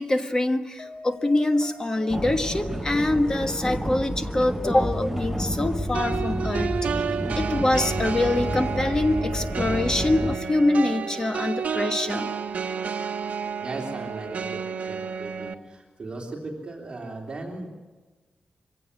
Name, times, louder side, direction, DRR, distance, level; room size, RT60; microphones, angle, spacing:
voice 1, 0.0-6.7 7.4-12.3, left 2 dB, 25° left, 7 dB, 1.3 m, -24 dB
sound 1, 0.8-13.6, left 1 dB, 70° left, 3.5 m, -45 dB
sound 2, 2.1-10.4, equal, 10° right, 0.9 m, -30 dB
sound 3, 5.9-15.5, right 6 dB, 70° right, 1.2 m, -31 dB
voice 2, 13.6-17.7, right 2 dB, 40° right, 0 dB, 3.4 m, -37 dB
24.0 x 17.0 x 9.9 m, 1.3 s
wide cardioid pair, 135°, 3 cm